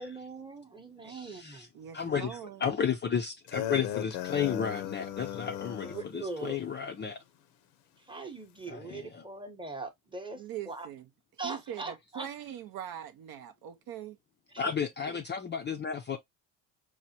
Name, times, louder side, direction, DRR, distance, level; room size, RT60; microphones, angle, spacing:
voice 1, 0.0-1.7 5.8-6.6 8.0-10.9 11.4-12.3, right 3 dB, 10° right, 0.9 m, -41 dB
voice 2, 1.1-1.7 1.9-7.2 8.7-9.2 14.6-16.2, left 7 dB, 25° left, 0.5 m, -33 dB
voice 3, 1.7-2.6 10.4-11.0 11.4-14.1 14.6-14.8, right 10 dB, 50° right, 0.6 m, -42 dB
sound 1, 3.5-6.1, left 11 dB, 85° left, 0.8 m, -36 dB
4.7 x 2.2 x 2.7 m
supercardioid pair, 85°, 48 cm